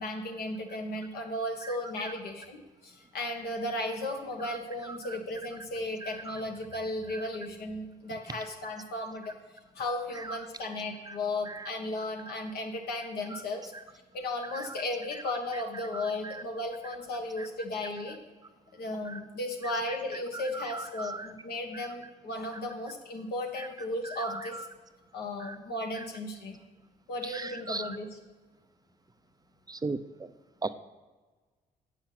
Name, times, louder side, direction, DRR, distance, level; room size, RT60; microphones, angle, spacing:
voice 1, 0.0-9.3 9.7-13.7 14.1-18.2 18.7-24.7 25.1-26.6 27.1-28.2, left 1 dB, 75° left, 2 dB, 1.5 m, -35 dB
voice 2, 4.8-5.2 6.0-6.4 7.1-7.3 10.2-10.4 11.1-11.2 11.4-11.7 13.3-13.4 14.5-14.6 15.2-15.3 15.9-16.4 17.4-17.5 19.1-19.2 19.6-20.0 20.3-21.3 21.7-21.8 23.6-23.7 24.0-24.7 25.4-25.6 27.2-28.0 29.7-30.0 30.6-30.7, right 3 dB, 25° right, 11 dB, 0.5 m, -38 dB
7.9 x 5.9 x 5.9 m, 1.3 s
supercardioid pair, 65°, 17 cm